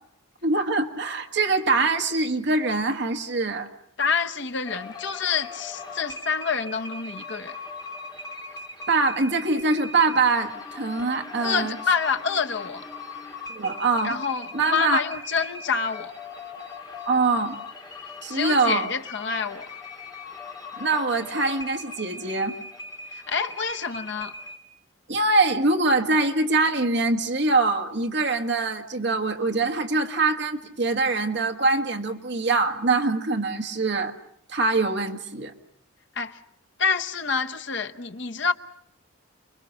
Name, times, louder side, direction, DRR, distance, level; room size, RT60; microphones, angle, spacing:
voice 1, 0.4-3.7 8.9-11.8 13.5-14.1 14.5-15.0 17.0-17.6 18.2-18.9 20.8-22.6 25.1-34.1 34.5-35.5, right 3 dB, 50° right, 1.6 m, -23 dB
voice 2, 4.0-7.5 11.4-12.8 14.0-16.1 18.3-19.7 23.1-24.3 36.2-36.4 36.8-38.5, left 5 dB, 55° left, 1.0 m, -27 dB
sound 1, 4.6-24.6, left 3 dB, 20° left, 2.2 m, -40 dB
29.0 x 22.0 x 6.3 m
head